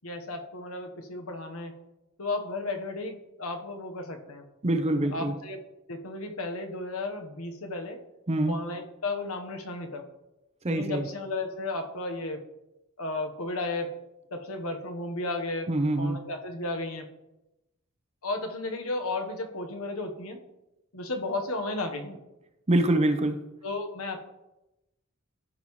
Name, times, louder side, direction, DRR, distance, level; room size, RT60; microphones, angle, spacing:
voice 1, 0.0-1.7 2.2-4.4 5.1-5.6 5.9-8.0 8.5-10.1 10.7-12.4 13.0-13.9 14.3-15.7 16.0-17.1 18.2-20.4 20.9-22.2 23.6-24.2, left 2 dB, 75° left, 4 dB, 1.2 m, -34 dB
voice 2, 4.6-5.4 8.3-8.6 10.6-11.1 15.7-16.3 22.7-23.5, right 1 dB, 30° right, 8 dB, 0.7 m, -25 dB
15.0 x 5.5 x 3.1 m, 0.95 s
head